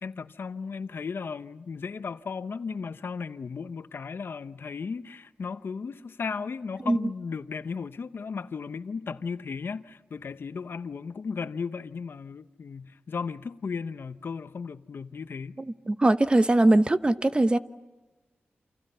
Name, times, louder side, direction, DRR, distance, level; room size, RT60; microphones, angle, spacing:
voice 1, 0.0-15.6, left 5 dB, 65° left, 0.9 m, -35 dB
voice 2, 15.9-17.6, right 2 dB, 25° right, 0.9 m, -21 dB
29.0 x 27.0 x 5.6 m
wide cardioid pair, 90°, 4 cm